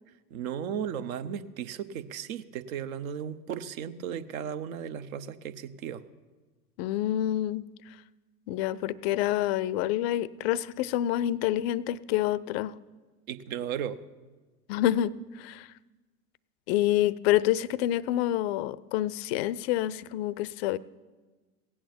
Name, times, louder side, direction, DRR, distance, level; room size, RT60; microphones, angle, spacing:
voice 1, 0.3-6.0 13.3-14.0, right 8 dB, 60° right, 13 dB, 0.9 m, -35 dB
voice 2, 6.8-7.6 8.5-12.7 14.7-15.7 16.7-20.8, left 13 dB, 40° left, 21 dB, 0.5 m, -27 dB
17.0 x 8.7 x 6.9 m, 1.3 s
figure-of-eight pair, 80°, 47 cm